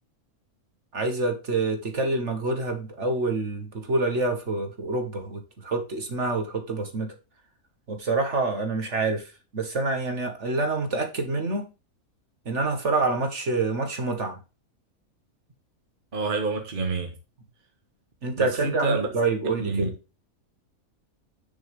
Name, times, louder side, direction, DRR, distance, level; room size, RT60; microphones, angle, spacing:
voice 1, 0.9-7.2 7.9-11.7 12.5-14.4 18.2-19.9, right 3 dB, 55° right, 2.1 m, -27 dB
voice 2, 16.1-17.1 18.4-19.1 19.6-19.9, right 4 dB, 35° right, 1.6 m, -28 dB
10.0 x 6.3 x 3.6 m
omnidirectional pair, 1.5 m